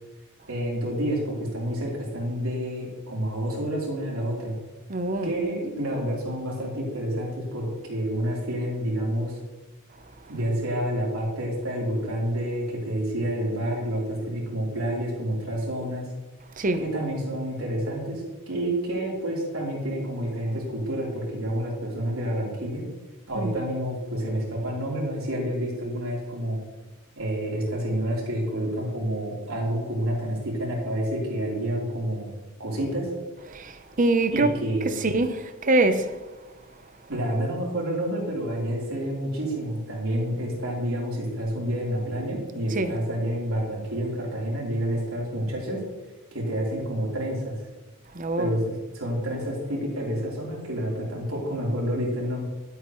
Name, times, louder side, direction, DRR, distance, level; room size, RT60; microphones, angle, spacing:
voice 1, 0.5-4.5 5.2-9.4 10.3-16.1 16.8-22.8 23.3-26.6 27.2-32.3 32.6-33.1 34.3-35.0 37.1-45.8 46.3-47.6 48.4-52.4, equal, 85° right, 3.7 m, -29 dB
voice 2, 4.9-5.3 16.6-16.8 23.3-23.5 33.5-34.5 35.0-36.1 42.8-42.9 48.2-48.5, right 2 dB, 40° right, 0.8 m, -24 dB
12.5 x 8.4 x 3.1 m
head